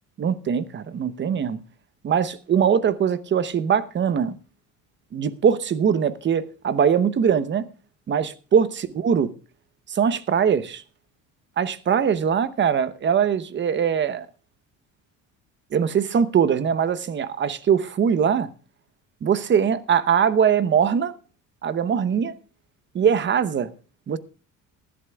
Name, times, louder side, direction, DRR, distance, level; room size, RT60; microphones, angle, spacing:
voice 1, 0.2-1.6 2.0-4.4 5.1-7.7 8.1-9.3 9.9-10.8 11.6-14.3 15.7-18.5 19.2-21.1 21.6-22.3 22.9-23.7 24.1-24.2, right 7 dB, 35° right, 0.8 m, -21 dB
20.0 x 11.5 x 2.3 m
cardioid pair, 115°, 33 cm